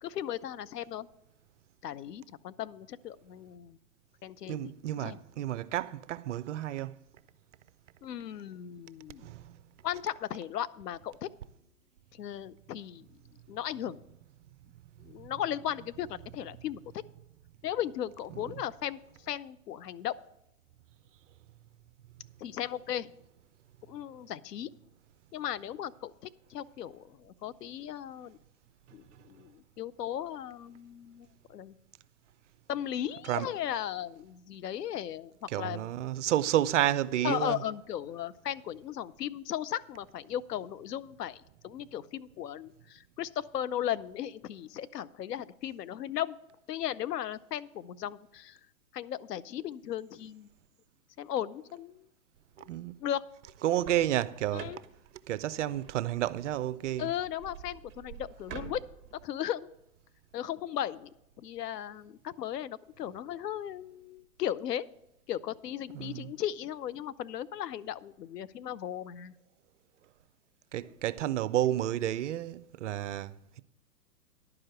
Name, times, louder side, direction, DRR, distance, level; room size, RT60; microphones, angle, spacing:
voice 1, 0.0-1.1 1.8-3.8 4.2-4.7 5.0-5.2 8.0-9.3 9.8-11.3 12.1-13.1 13.5-14.0 15.0-17.0 17.6-20.2 22.4-23.1 23.9-24.7 25.3-28.4 28.9-31.7 32.7-35.9 37.2-46.4 46.7-48.6 48.9-50.5 51.2-52.1 52.6-52.7 53.0-53.2 54.5-54.8 57.0-58.8 59.2-59.7 60.3-61.1 61.4-64.8 65.3-69.3, left 11 dB, 80° left, 0.6 m, -36 dB
voice 2, 4.5-7.0 9.2-9.6 15.0-15.3 18.3-18.6 29.1-29.3 33.2-33.5 35.5-37.6 52.6-53.0 53.6-54.7 55.3-57.1 65.9-66.3 70.7-73.6, right 12 dB, 50° right, 0.5 m, -31 dB
sound 1, 53.5-59.2, right 8 dB, 25° right, 1.1 m, -48 dB
11.0 x 4.9 x 7.8 m
hypercardioid pair, 130°, 48 cm